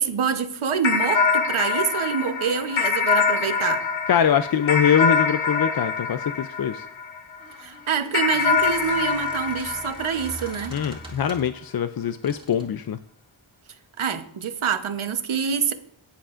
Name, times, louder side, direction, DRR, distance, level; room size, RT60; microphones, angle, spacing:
voice 1, 0.0-3.8 7.6-10.7 14.0-15.7, right 6 dB, 90° right, 9 dB, 1.0 m, -26 dB
sound 1, 0.8-7.4 8.1-10.9, left 5 dB, 70° left, 1.5 m, -24 dB
voice 2, 4.1-6.9 10.7-13.0, left 8 dB, 50° left, 11 dB, 0.5 m, -23 dB
Squeak, 7.4-11.6 12.2-12.7, right 2 dB, 10° right, 3.4 m, -43 dB
19.0 x 10.0 x 2.5 m, 0.69 s
wide cardioid pair, 90°, 48 cm